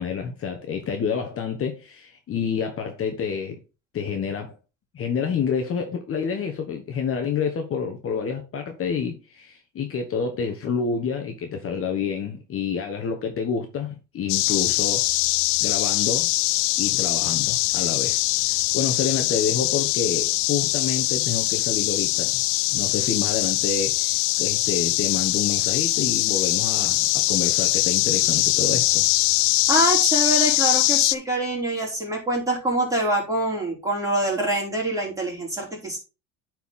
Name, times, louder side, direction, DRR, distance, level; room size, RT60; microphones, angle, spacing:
voice 1, 0.0-3.6 3.9-4.6 4.9-15.1 15.6-16.3 16.8-18.2 18.4-22.4 22.7-29.1, left 6 dB, 40° left, 1.4 m, -28 dB
sound 1, 14.3-31.2, left 22 dB, 80° left, 0.5 m, -22 dB
voice 2, 29.7-36.0, right 1 dB, 10° right, 4.3 m, -25 dB
9.2 x 4.7 x 3.7 m
supercardioid pair, 105°, 35 cm